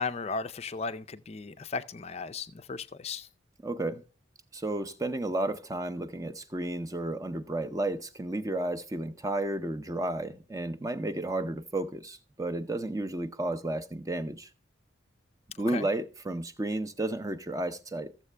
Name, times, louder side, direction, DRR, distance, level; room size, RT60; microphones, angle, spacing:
voice 1, 0.0-3.3 15.7-15.9, left 4 dB, 30° left, 0.4 m, -35 dB
voice 2, 3.6-4.0 4.5-14.5 15.6-18.1, right 1 dB, 15° right, 0.6 m, -32 dB
14.0 x 7.4 x 3.3 m
head